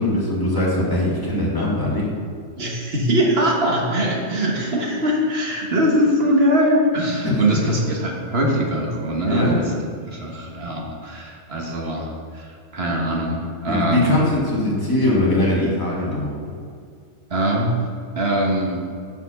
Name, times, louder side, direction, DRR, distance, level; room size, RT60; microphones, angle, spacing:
voice 1, 0.0-2.1 7.2-7.4 9.3-9.6 13.7-16.3, left 1 dB, 15° left, -6 dB, 2.1 m, -21 dB
voice 2, 2.6-9.6 10.0-14.1 17.3-17.8 18.2-18.9, equal, 50° right, -1 dB, 1.5 m, -22 dB
7.1 x 5.9 x 5.8 m, 2.2 s
omnidirectional pair, 1.4 m